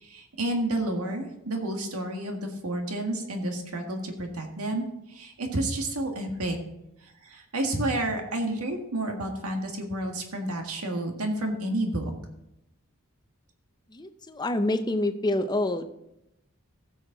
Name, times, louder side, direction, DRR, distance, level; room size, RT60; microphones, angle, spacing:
voice 1, 0.0-4.9 5.1-6.6 7.2-12.1, right 1 dB, 85° right, 3 dB, 1.7 m, -30 dB
voice 2, 13.9-15.8, left 1 dB, 20° left, 8 dB, 0.6 m, -27 dB
15.5 x 6.4 x 3.9 m, 0.85 s
head